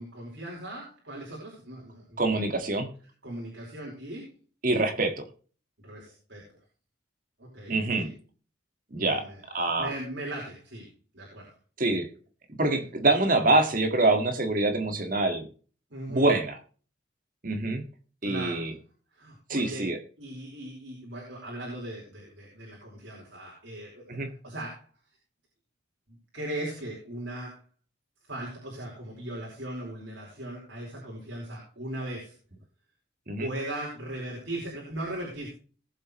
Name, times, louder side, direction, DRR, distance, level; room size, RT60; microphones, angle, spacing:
voice 1, 0.0-2.5 3.2-4.4 5.8-6.4 7.4-8.2 9.0-10.9 11.1-11.5 15.9-16.3 18.2-18.7 19.1-19.9 20.2-24.0 24.4-24.8 26.3-27.6 28.3-32.3 33.4-35.5, right 1 dB, 65° right, -3 dB, 4.7 m, -38 dB
voice 2, 2.2-2.9 4.6-5.1 7.7-8.1 8.9-9.2 9.5-9.9 11.8-12.1 12.6-15.5 16.1-16.6 17.4-17.8 18.2-18.7 19.5-20.0 24.1-24.3 33.3-33.5, right 2 dB, 45° right, 6 dB, 1.9 m, -25 dB
20.0 x 7.7 x 3.2 m, 0.39 s
head